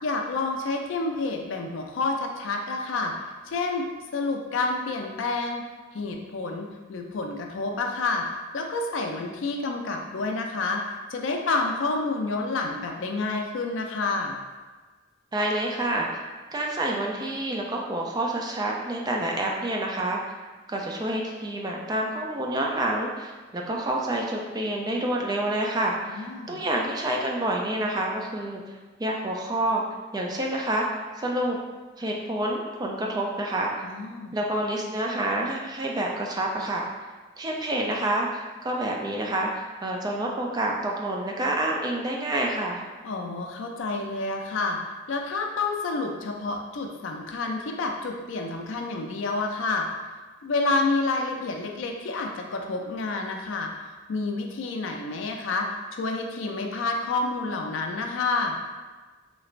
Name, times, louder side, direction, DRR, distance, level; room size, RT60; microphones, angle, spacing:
voice 1, 0.0-3.1 3.5-5.6 5.9-8.2 8.5-10.8 11.1-14.4 26.1-26.6 33.8-34.3 43.0-44.8 45.1-49.9 50.4-53.7 54.1-58.6, left 3 dB, 70° left, 2 dB, 0.4 m, -29 dB
voice 2, 15.3-16.2 16.5-20.3 20.7-28.6 29.0-29.8 30.1-30.9 31.2-31.6 32.0-33.7 34.3-36.8 37.4-42.8, right 1 dB, 20° right, -1 dB, 0.3 m, -28 dB
3.2 x 3.1 x 2.4 m, 1.3 s
head